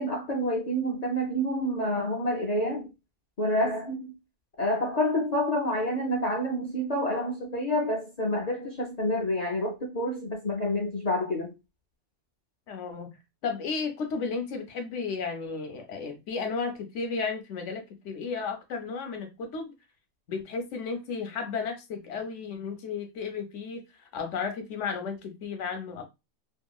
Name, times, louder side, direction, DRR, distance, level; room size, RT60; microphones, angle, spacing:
voice 1, 0.0-2.9 3.4-4.1 4.6-11.5, equal, 50° left, 0.5 m, -28 dB
voice 2, 12.7-13.2 13.4-19.7 20.3-23.8 24.1-26.0, left 5 dB, 75° left, 1.0 m, -33 dB
2.8 x 2.5 x 2.2 m
omnidirectional pair, 1.3 m